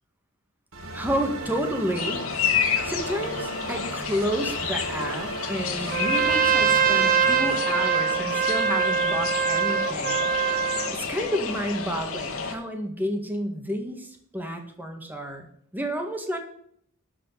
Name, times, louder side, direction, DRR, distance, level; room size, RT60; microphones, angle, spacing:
sound 1, 0.7-7.6, right 2 dB, 85° right, 2.4 m, -36 dB
voice 1, 0.9-2.2 2.8-10.2 10.9-15.5 15.7-16.4, equal, 10° right, 3 dB, 1.8 m, -30 dB
sound 2, 2.0-12.5, left 6 dB, 85° left, 1.6 m, -30 dB
Trumpet, 5.9-10.9, right 7 dB, 45° right, 1.0 m, -23 dB
12.0 x 4.9 x 8.2 m, 0.64 s
head